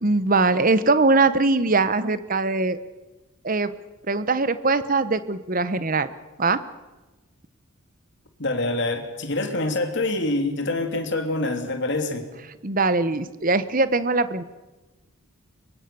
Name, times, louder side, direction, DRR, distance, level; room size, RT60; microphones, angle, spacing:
voice 1, 0.0-2.8 3.4-3.7 4.1-6.1 6.4-6.6 12.6-14.4, right 3 dB, 40° right, 13 dB, 1.0 m, -21 dB
voice 2, 8.4-12.3, left 2 dB, 55° left, 5 dB, 3.0 m, -25 dB
24.0 x 23.0 x 6.9 m, 1.1 s
head